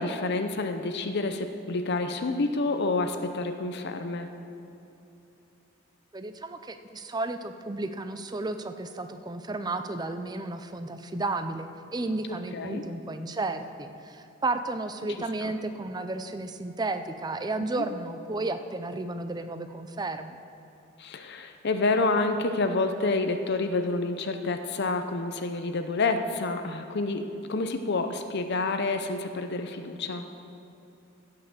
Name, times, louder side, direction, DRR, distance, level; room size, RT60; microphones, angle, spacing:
voice 1, 0.0-4.3 12.3-12.8 15.4-15.5 21.0-30.2, left 3 dB, 55° left, 7 dB, 0.7 m, -28 dB
voice 2, 6.1-20.4, right 2 dB, 20° right, 9 dB, 0.5 m, -33 dB
16.0 x 5.7 x 6.6 m, 2.9 s
head